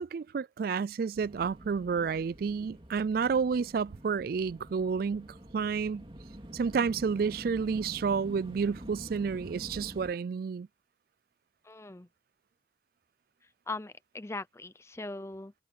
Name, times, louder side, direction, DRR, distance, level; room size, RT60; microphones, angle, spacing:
voice 1, 0.0-5.3 5.5-6.0 6.5-10.7, right 5 dB, 50° right, 0.3 m, -30 dB
sound 1, 1.1-10.1, right 1 dB, 30° right, 2.4 m, -47 dB
voice 2, 11.6-12.1 13.7-15.5, left 2 dB, 15° left, 0.6 m, -40 dB
head